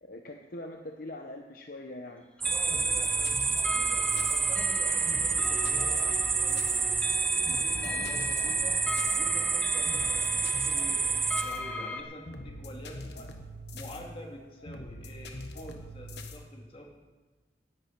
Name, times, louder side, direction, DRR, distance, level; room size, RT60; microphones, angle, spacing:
voice 1, 0.0-2.3, left 1 dB, 55° left, 4 dB, 0.8 m, -42 dB
sound 1, 2.4-12.0, left 2 dB, 5° left, 1.2 m, -37 dB
sound 2, 2.4-11.4, right 5 dB, 15° right, 0.4 m, -28 dB
voice 2, 2.5-8.8 9.2-11.1 11.4-13.3 13.7-16.9, equal, 30° left, 1 dB, 2.1 m, -47 dB
sound 3, 2.7-16.4, left 1 dB, 75° left, 1.3 m, -43 dB
17.0 x 11.0 x 4.5 m, 1.3 s
head